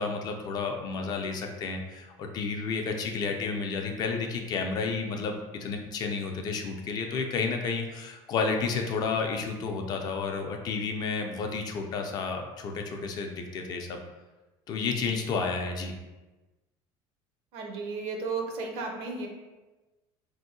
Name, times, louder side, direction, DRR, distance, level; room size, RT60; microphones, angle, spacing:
voice 1, 0.0-14.0 14.7-16.0, left 4 dB, 40° left, 3 dB, 0.4 m, -31 dB
voice 2, 17.5-19.3, right 4 dB, 65° right, 2 dB, 0.6 m, -34 dB
3.4 x 2.6 x 2.6 m, 1.1 s
cardioid pair, 150°, 11 cm